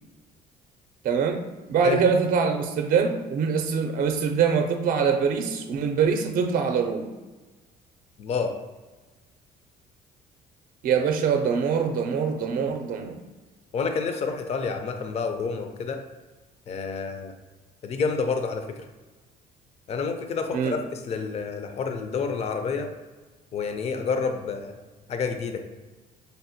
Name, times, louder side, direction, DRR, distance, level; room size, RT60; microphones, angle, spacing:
voice 1, 1.0-1.4 1.7-7.1 10.8-13.2 20.5-20.8, right 6 dB, 55° right, 4 dB, 0.5 m, -24 dB
voice 2, 8.2-8.5 13.7-16.0 16.7-17.3 17.8-18.7 19.9-22.9 23.5-24.7 25.1-25.7, left 5 dB, 40° left, 6 dB, 0.4 m, -28 dB
5.2 x 2.1 x 2.8 m, 1.2 s
cardioid pair, 110°, 17 cm